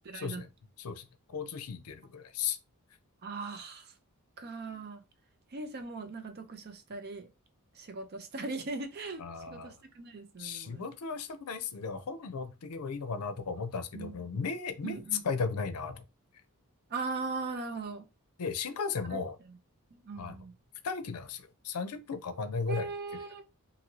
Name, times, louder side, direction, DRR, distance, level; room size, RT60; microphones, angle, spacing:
voice 1, 0.1-0.4 3.2-3.9 4.4-5.0 5.5-7.3 7.7-10.8 12.7-12.8 13.9-14.2 14.8-15.2 16.9-18.0 19.1-19.2 19.5-19.6 19.9-20.5 22.7-23.4, right 3 dB, 45° right, 0.5 m, -39 dB
voice 2, 0.8-2.6 9.2-9.8 10.4-16.0 18.4-19.4 20.2-20.4 20.8-22.9, left 5 dB, 80° left, 0.5 m, -35 dB
2.7 x 2.7 x 2.9 m
head